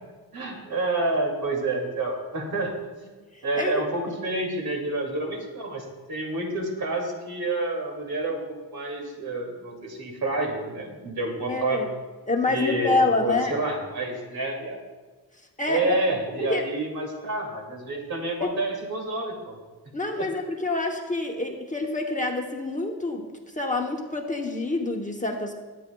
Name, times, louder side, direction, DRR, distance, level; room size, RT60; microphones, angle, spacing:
voice 1, 0.3-2.7 3.0-11.9 12.5-14.8 15.7-19.6 20.2-20.3, right 2 dB, 65° right, 0 dB, 2.5 m, -29 dB
voice 2, 11.5-11.9 12.3-13.6 15.6-16.0 16.4-16.6 18.4-18.5 19.9-23.3 23.6-25.5, left 2 dB, 20° left, 1 dB, 0.9 m, -27 dB
21.5 x 9.5 x 2.3 m, 1.3 s
wide cardioid pair, 165°, 40 cm